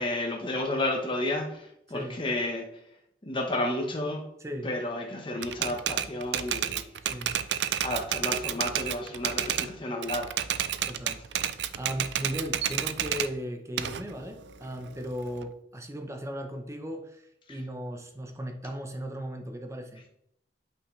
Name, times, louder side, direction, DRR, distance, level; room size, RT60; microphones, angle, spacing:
voice 1, 0.0-2.6 3.2-4.2 4.6-6.9 7.8-10.3, left 1 dB, 30° left, 1 dB, 1.1 m, -31 dB
voice 2, 1.9-2.2 4.4-4.7 7.1-7.4 10.9-20.0, equal, 15° right, 4 dB, 0.8 m, -37 dB
Typewriter, 5.4-9.7 10.0-13.3 13.8-15.4, right 10 dB, 80° right, 0.4 m, -30 dB
8.4 x 5.7 x 3.2 m, 0.75 s
head